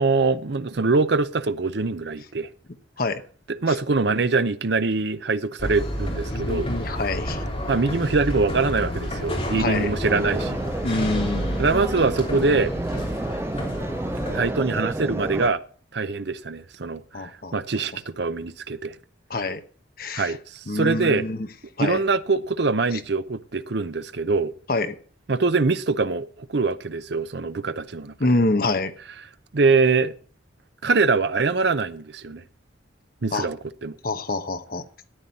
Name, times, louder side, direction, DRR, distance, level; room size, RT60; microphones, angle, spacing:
voice 1, 0.0-2.5 3.6-6.7 7.7-10.6 11.6-12.7 14.3-15.6 15.9-19.0 20.1-21.3 21.8-24.5 25.3-28.1 29.5-30.1 30.8-32.4 33.2-33.9, right 4 dB, 65° right, 0.7 m, -23 dB
sound 1, 5.6-14.5, equal, 30° left, 3.2 m, -30 dB
voice 2, 6.3-7.4 9.6-9.9 10.8-11.6 17.1-17.5 19.3-19.6 20.0-20.4 20.7-21.5 21.8-22.0 22.9-23.0 24.7-25.0 28.2-28.9 33.3-33.5 34.0-34.9, left 2 dB, 50° left, 1.0 m, -26 dB
sound 2, 10.0-15.5, right 1 dB, 15° right, 0.4 m, -30 dB
13.5 x 9.3 x 4.1 m
head